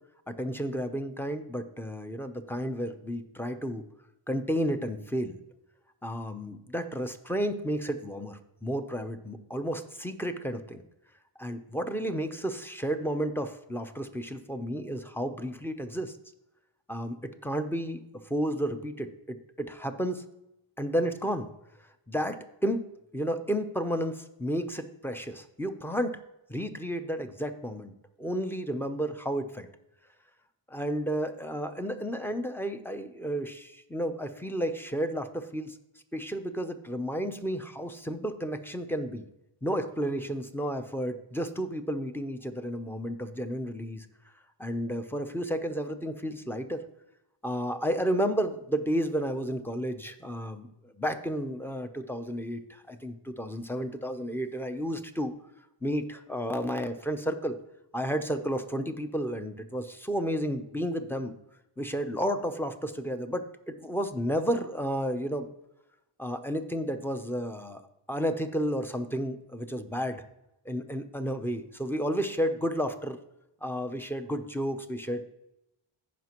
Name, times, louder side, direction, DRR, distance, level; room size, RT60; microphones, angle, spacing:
voice 1, 0.3-3.8 4.3-5.4 6.0-10.8 11.4-16.1 16.9-17.2 17.4-18.0 18.3-20.2 20.8-21.5 22.1-22.8 23.1-26.2 26.5-27.9 28.2-29.7 30.7-35.8 36.1-39.3 39.6-44.1 44.6-46.8 47.4-55.3 55.8-57.6 57.9-61.3 61.8-65.5 66.2-67.8 68.1-70.2 70.7-73.2 73.6-75.2, equal, 5° left, 8 dB, 0.6 m, -32 dB
15.0 x 5.2 x 3.0 m, 0.87 s
cardioid pair, 95°, 49 cm